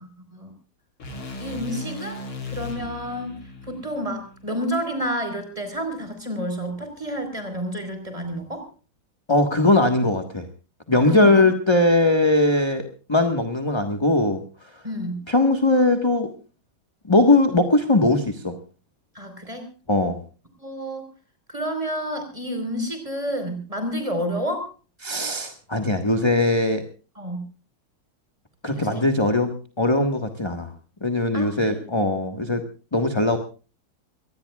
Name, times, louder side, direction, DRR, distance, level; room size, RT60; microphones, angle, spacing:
sound 1, 1.0-5.2, left 3 dB, 85° left, 4.2 m, -37 dB
voice 1, 1.4-3.3 3.7-8.7 11.1-11.4 14.8-15.2 19.1-19.7 20.6-21.1 21.5-24.7 27.2-27.4 28.7-29.0 31.3-31.8, equal, 15° right, 6 dB, 4.5 m, -30 dB
voice 2, 9.3-10.5 10.9-14.4 15.3-16.3 17.1-18.5 19.9-20.2 25.0-26.8 28.6-29.5 29.8-30.7 31.0-32.6 32.9-33.4, left 2 dB, 15° left, 6 dB, 1.2 m, -20 dB
24.0 x 19.0 x 2.4 m, 0.36 s
omnidirectional pair, 2.2 m